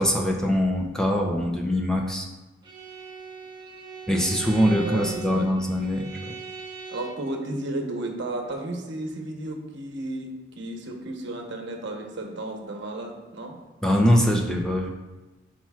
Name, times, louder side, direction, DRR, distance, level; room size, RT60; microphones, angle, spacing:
voice 1, 0.0-2.3 4.1-6.1 13.8-14.9, equal, 5° left, 0 dB, 0.6 m, -23 dB
Bowed string instrument, 2.6-7.3, right 5 dB, 25° right, 1.0 m, -40 dB
voice 2, 4.7-5.5 6.9-10.3 10.6-13.6, right 2 dB, 65° right, 2 dB, 1.0 m, -33 dB
11.5 x 4.4 x 2.4 m, 1.1 s
head